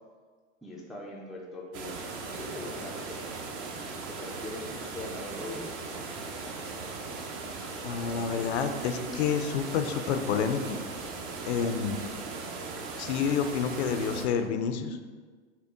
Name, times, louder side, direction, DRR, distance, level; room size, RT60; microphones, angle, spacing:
voice 1, 0.6-3.2 4.1-5.7, left 2 dB, ahead, -4 dB, 0.3 m, -41 dB
sound 1, 1.7-14.3, right 4 dB, 45° right, 0.7 m, -38 dB
voice 2, 7.8-10.8 11.5-12.0 13.0-15.0, left 6 dB, 65° left, 8 dB, 0.5 m, -29 dB
5.6 x 2.1 x 3.6 m, 1.5 s
hypercardioid pair, 110°, 35 cm